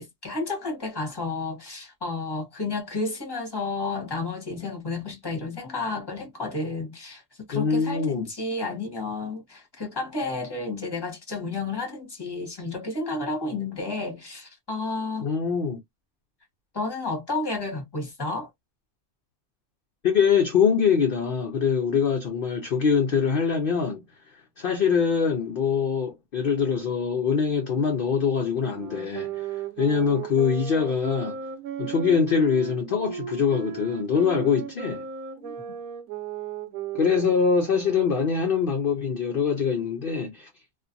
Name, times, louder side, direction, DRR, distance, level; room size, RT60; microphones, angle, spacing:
voice 1, 0.0-7.2 7.5-15.3 16.7-18.5 35.4-35.5, left 3 dB, 20° left, 0.9 m, -31 dB
voice 2, 7.5-8.3 15.2-15.8 20.0-31.4 31.8-35.0 36.9-40.5, left 6 dB, 65° left, 0.5 m, -24 dB
sound 1, 28.5-38.6, right 8 dB, 75° right, 1.1 m, -36 dB
2.4 x 2.4 x 2.6 m
omnidirectional pair, 1.5 m